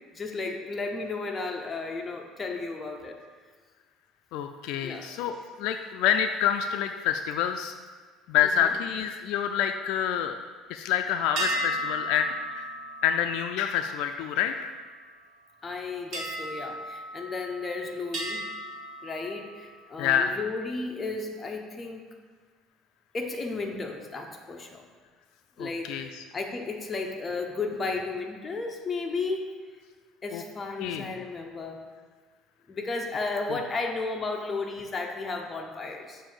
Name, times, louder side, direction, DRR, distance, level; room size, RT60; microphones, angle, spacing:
voice 1, 0.1-3.2 4.8-5.1 8.6-8.7 15.6-18.4 19.0-22.1 23.1-24.8 25.6-29.4 30.2-31.8 32.7-36.2, left 3 dB, 20° left, 2 dB, 0.7 m, -34 dB
voice 2, 4.3-7.7 8.3-10.4 10.7-12.7 13.0-14.7 20.0-20.4 25.6-26.2 30.3-30.4 30.8-31.1, left 9 dB, 75° left, 7 dB, 0.3 m, -27 dB
sound 1, 11.4-15.0 16.1-17.7 18.1-19.8, right 1 dB, 55° right, 1.4 m, -36 dB
6.9 x 2.6 x 5.6 m, 1.5 s
cardioid pair, 135°, 0 cm